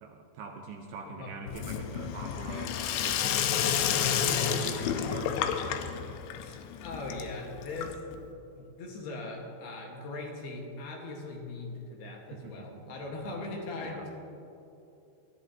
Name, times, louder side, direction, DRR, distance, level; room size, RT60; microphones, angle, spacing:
voice 1, 0.0-3.5 3.8-4.2 4.5-5.8 12.3-13.0 13.8-14.1, right 5 dB, 75° right, 2 dB, 2.5 m, -43 dB
Sink (filling or washing), 1.5-8.3, left 9 dB, 80° left, 2.9 m, -30 dB
voice 2, 3.5-4.8 6.4-8.2 8.6-14.1, left 2 dB, 65° left, -1 dB, 3.3 m, -40 dB
22.0 x 13.0 x 2.8 m, 2.8 s
omnidirectional pair, 5.2 m